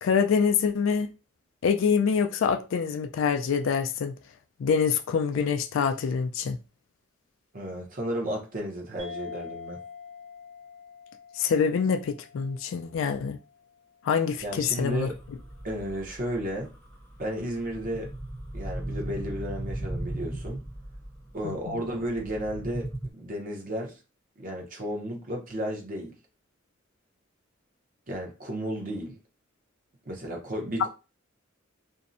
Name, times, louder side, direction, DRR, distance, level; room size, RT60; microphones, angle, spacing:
voice 1, 0.0-1.1 1.6-4.1 4.6-6.6 11.4-13.4 14.0-15.1 21.4-21.8, left 6 dB, 65° left, 0.3 m, -25 dB
voice 2, 7.5-9.8 14.4-15.1 15.6-16.7 17.2-18.1 18.5-20.6 21.3-24.0 24.4-26.1 28.1-29.2 30.1-30.9, equal, 40° right, 0.7 m, -33 dB
sound 1, 9.0-13.9, left 6 dB, 85° right, 1.2 m, -45 dB
sound 2, 14.4-23.1, right 1 dB, 10° left, 0.6 m, -38 dB
2.6 x 2.1 x 2.5 m
head